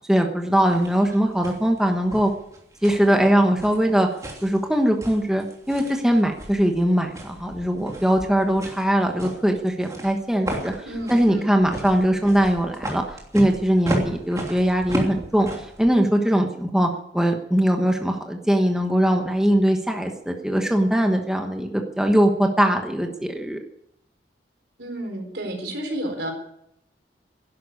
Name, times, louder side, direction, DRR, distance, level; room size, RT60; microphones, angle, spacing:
voice 1, 0.1-2.3 2.8-4.1 4.4-10.7 11.1-13.0 13.3-23.6, equal, 5° right, 3 dB, 1.2 m, -21 dB
sound 1, 0.7-15.9, right 1 dB, 20° right, 3.0 m, -35 dB
voice 2, 10.8-11.5 24.8-26.3, right 1 dB, 75° right, 3 dB, 4.2 m, -31 dB
11.5 x 11.5 x 9.6 m, 0.78 s
head